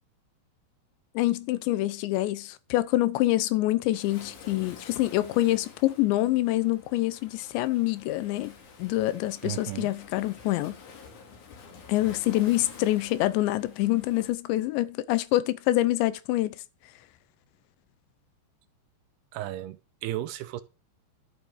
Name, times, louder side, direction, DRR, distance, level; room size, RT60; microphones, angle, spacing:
voice 1, 1.2-10.8 11.9-16.6, left 16 dB, 90° left, 3.1 m, -26 dB
Waves surf, 3.9-14.3, left 5 dB, 50° left, 3.3 m, -49 dB
voice 2, 9.4-9.9 19.3-20.6, right 14 dB, 80° right, 2.6 m, -34 dB
11.5 x 7.2 x 6.3 m
omnidirectional pair, 5.0 m